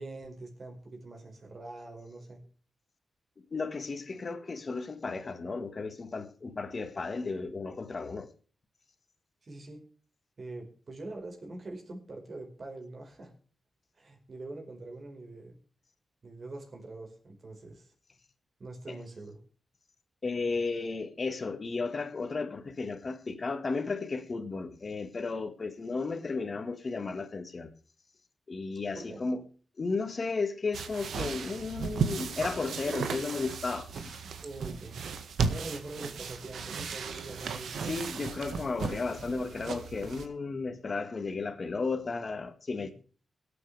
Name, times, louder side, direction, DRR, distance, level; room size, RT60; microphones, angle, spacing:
voice 1, 0.0-2.4 9.4-9.8 10.4-13.3 13.9-15.6 16.2-17.9 18.6-19.4 28.9-29.2 34.2-35.0 35.5-37.9 42.8-42.9, right 2 dB, 40° right, 5.1 m, -44 dB
voice 2, 3.5-8.3 18.9-19.0 20.2-27.7 28.5-29.4 29.8-34.2 37.8-42.9, left 4 dB, 35° left, 1.8 m, -34 dB
sound 1, 30.7-40.3, right 5 dB, 80° right, 1.7 m, -35 dB
24.0 x 8.8 x 3.5 m
wide cardioid pair, 135°, 0 cm